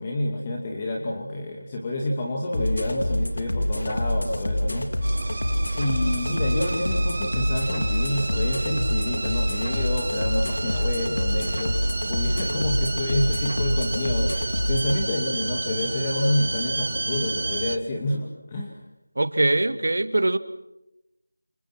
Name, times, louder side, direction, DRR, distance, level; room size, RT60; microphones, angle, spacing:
voice 1, 0.0-5.4 5.8-11.8 12.1-18.8, left 1 dB, 20° left, 0 dB, 2.5 m, -28 dB
sound 1, 2.5-15.0, left 1 dB, 90° left, 4.6 m, -26 dB
sound 2, 5.0-17.8, right 2 dB, 45° right, 1.3 m, -31 dB
voice 2, 19.2-20.4, right 2 dB, 65° right, 11 dB, 2.1 m, -22 dB
30.0 x 29.0 x 6.1 m, 0.91 s
figure-of-eight pair, 175°, 0 cm